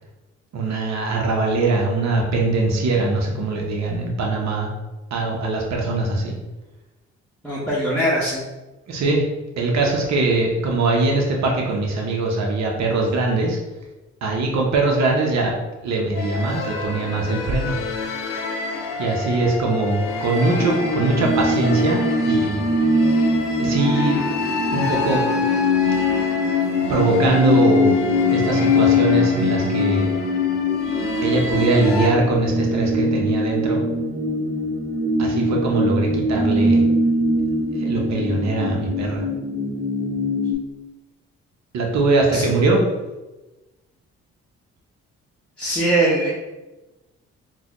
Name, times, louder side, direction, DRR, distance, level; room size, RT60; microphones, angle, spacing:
voice 1, 0.5-4.7 5.1-6.3 8.9-9.2 9.6-13.6 14.2-15.5 15.8-17.7 19.0-22.7 23.6-24.2 24.7-25.2 26.9-28.0 28.3-30.1 31.2-33.8 35.2-36.8 37.8-39.2 41.7-42.8, right 2 dB, 55° right, 0 dB, 0.8 m, -21 dB
voice 2, 7.4-8.4 42.3-42.4 45.6-46.3, right 1 dB, 5° left, -8 dB, 1.0 m, -21 dB
sound 1, 16.1-32.1, left 3 dB, 80° left, 0.6 m, -29 dB
sound 2, 20.6-40.5, left 2 dB, 25° right, 0.8 m, -22 dB
3.9 x 2.3 x 2.9 m, 1.1 s
supercardioid pair, 50°, 32 cm